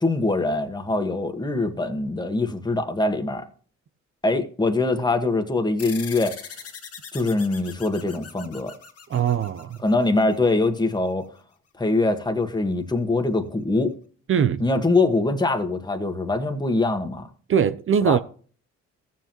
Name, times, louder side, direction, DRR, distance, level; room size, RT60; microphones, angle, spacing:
voice 1, 0.0-3.4 4.2-6.4 7.1-8.7 9.8-11.3 11.8-13.9 14.6-17.3 18.0-18.2, left 2 dB, 15° left, 1.5 m, -23 dB
sound 1, 5.8-10.7, left 6 dB, 50° left, 2.0 m, -41 dB
voice 2, 9.1-9.8 14.3-14.6 17.5-18.2, right 8 dB, 45° right, 0.6 m, -21 dB
14.5 x 7.6 x 3.0 m
cardioid pair, 90°, 30 cm